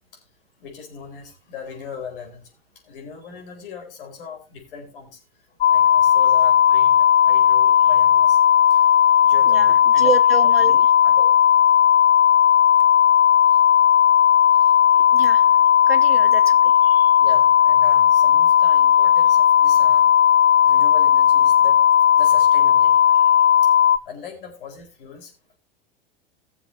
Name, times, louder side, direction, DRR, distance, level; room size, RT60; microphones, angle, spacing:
voice 1, 0.6-2.5 2.9-5.1 5.7-7.0 7.2-8.4 8.7-8.8 9.2-10.1 10.4-11.2 15.4-15.5 17.2-20.1 20.6-21.8 22.2-23.3 24.1-25.3, left 6 dB, 65° left, 0 dB, 4.4 m, -39 dB
sound 1, 5.6-24.0, left 9 dB, 30° left, 0.7 m, -15 dB
voice 2, 9.4-10.8 14.9-17.2, right 5 dB, 85° right, 11 dB, 1.0 m, -29 dB
19.5 x 7.1 x 2.7 m, 0.30 s
figure-of-eight pair, 85°, 29 cm